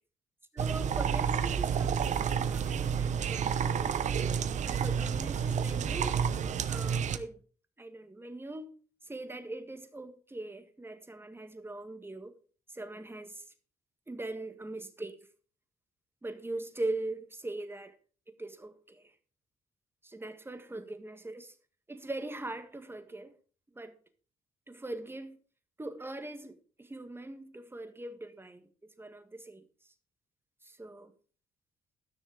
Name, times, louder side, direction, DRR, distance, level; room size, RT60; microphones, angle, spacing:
voice 1, 0.5-4.2 4.6-6.3 6.7-7.4 7.8-8.8 9.1-12.3 12.7-13.4 14.1-15.2 16.2-18.0 18.4-19.1 20.0-21.6 21.9-23.4 23.8-24.0 24.7-25.4 25.8-29.6 30.6-31.1, right 2 dB, 15° right, 1.7 m, -41 dB
sound 1, 0.6-7.2, right 7 dB, 60° right, 0.9 m, -30 dB
13.5 x 6.3 x 5.1 m
supercardioid pair, 60°, 14 cm